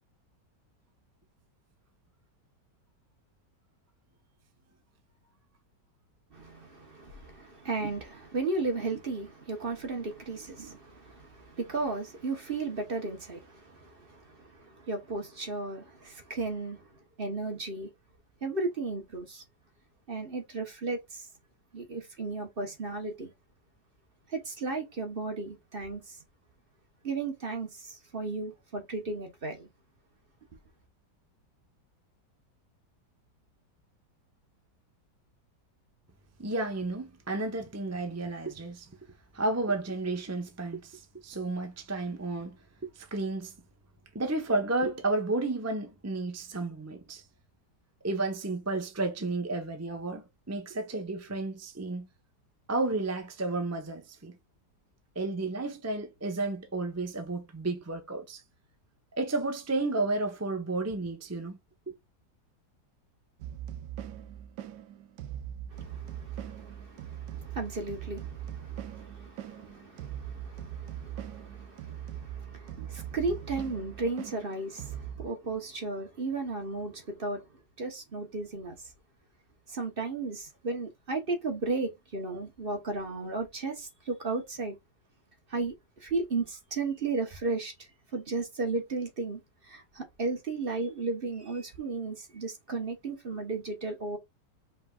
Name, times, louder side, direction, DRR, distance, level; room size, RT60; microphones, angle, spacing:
voice 1, 6.3-16.9 17.2-17.9 18.4-19.4 20.1-21.3 21.7-23.3 24.3-26.2 27.0-29.7 65.7-77.5 77.8-78.9 79.7-84.7 85.5-94.2, right 3 dB, 35° right, 1.1 m, -35 dB
voice 2, 36.4-38.9 39.3-43.5 44.1-47.2 48.0-52.1 52.7-54.3 55.1-58.4 59.2-61.6, right 2 dB, 15° right, 0.6 m, -32 dB
sound 1, 63.4-75.3, right 10 dB, 80° right, 1.2 m, -41 dB
5.3 x 3.7 x 2.4 m
omnidirectional pair, 1.9 m